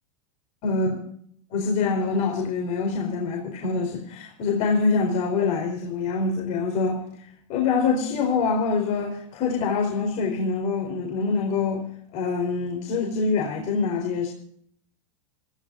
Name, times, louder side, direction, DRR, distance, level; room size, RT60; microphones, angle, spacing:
voice 1, 0.6-1.0 1.5-7.0 7.5-11.8 12.1-14.3, left 4 dB, 45° left, 0 dB, 4.4 m, -25 dB
25.5 x 16.0 x 2.7 m, 0.64 s
hypercardioid pair, 105°, 17 cm